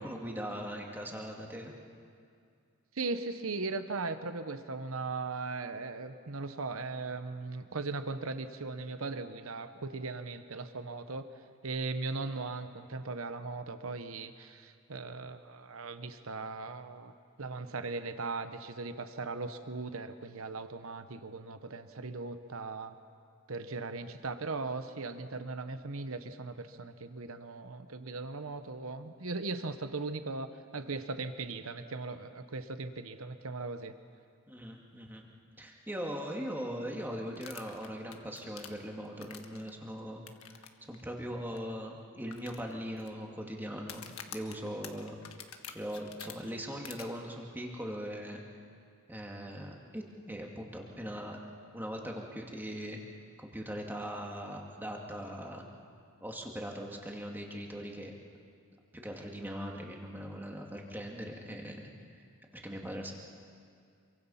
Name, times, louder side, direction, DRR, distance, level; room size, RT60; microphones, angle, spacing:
voice 1, 0.0-1.7 34.5-35.2 35.6-40.2 40.9-44.0 44.3-45.2 45.7-48.4 49.1-51.4 51.7-55.6 56.2-58.1 59.0-61.9 62.5-63.1, equal, 10° right, 0 dB, 2.3 m, -40 dB
voice 2, 2.9-11.3 11.6-17.1 17.4-22.9 23.5-33.9, right 3 dB, 75° right, 9 dB, 1.0 m, -38 dB
sound 1, 37.4-39.7 40.3-40.7 40.9-41.0 41.6-41.7 42.3-43.1 43.8-46.3 46.8-47.0, left 9 dB, 75° left, 1.5 m, -46 dB
27.0 x 24.0 x 5.7 m, 2.3 s
head